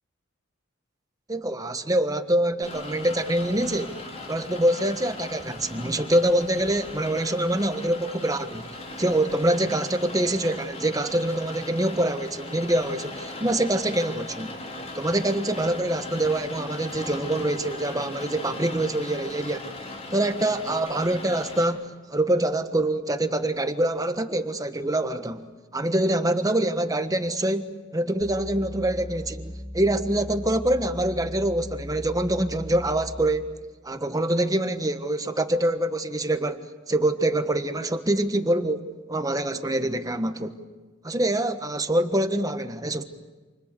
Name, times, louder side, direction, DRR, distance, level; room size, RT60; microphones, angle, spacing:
voice 1, 1.3-4.0 4.3-8.7 9.0-14.5 14.9-19.7 20.1-25.5 25.7-33.5 33.8-40.6 41.0-43.0, right 1 dB, 20° right, 9 dB, 1.4 m, -25 dB
Rain, 2.6-21.6, left 2 dB, 35° left, 5.1 m, -39 dB
sound 1, 28.2-33.5, equal, 5° right, 1.9 m, -38 dB
29.0 x 28.0 x 6.9 m, 1.3 s
head